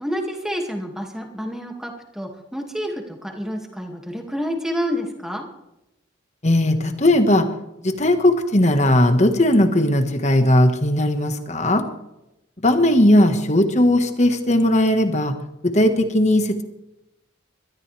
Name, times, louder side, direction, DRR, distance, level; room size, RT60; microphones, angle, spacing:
voice 1, 0.0-5.5, equal, ahead, 2 dB, 2.2 m, -29 dB
voice 2, 6.4-7.5 7.8-11.8 12.6-15.4 15.6-16.6, left 1 dB, 35° left, 7 dB, 1.5 m, -17 dB
22.0 x 13.5 x 3.4 m, 0.90 s
head